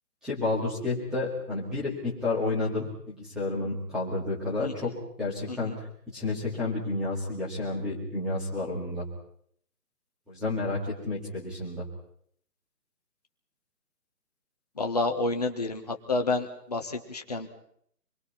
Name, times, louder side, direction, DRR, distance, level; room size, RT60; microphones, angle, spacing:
voice 1, 0.2-4.9 5.2-5.8 6.1-9.0 10.3-11.8, left 2 dB, ahead, -7 dB, 2.1 m, -30 dB
voice 2, 14.8-17.5, left 3 dB, 25° left, 4 dB, 1.6 m, -29 dB
27.0 x 22.0 x 5.7 m, 0.66 s
hypercardioid pair, 175°, 48 cm